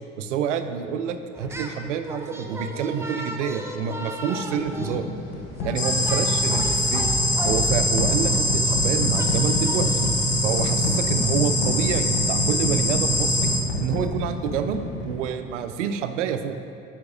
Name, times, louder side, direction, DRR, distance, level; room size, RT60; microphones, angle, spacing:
voice 1, 0.2-5.0 5.6-7.1 7.4-10.1 10.4-13.5 13.8-16.6, right 7 dB, 70° right, 9 dB, 0.6 m, -28 dB
sound 1, 1.3-1.8 2.0-10.1, right 1 dB, 5° right, 0.6 m, -35 dB
sound 2, 4.5-15.4, left 1 dB, 55° left, 1.3 m, -30 dB
sound 3, 5.8-13.6, equal, 20° left, 1.0 m, -23 dB
9.2 x 7.1 x 2.5 m, 2.5 s
figure-of-eight pair, 60°, 38 cm